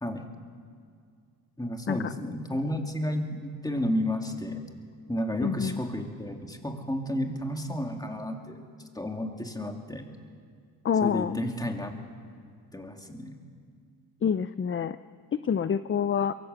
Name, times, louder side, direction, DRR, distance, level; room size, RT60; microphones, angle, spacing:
voice 1, 1.6-4.6 5.1-8.6 8.9-10.1 11.0-11.9 12.7-13.4, left 1 dB, 10° left, 3 dB, 2.6 m, -32 dB
voice 2, 5.4-5.8 10.8-11.4 14.2-15.0 15.4-16.3, left 7 dB, 30° left, 13 dB, 0.5 m, -27 dB
23.0 x 18.0 x 8.1 m, 2.2 s
cardioid pair, 85°, 40 cm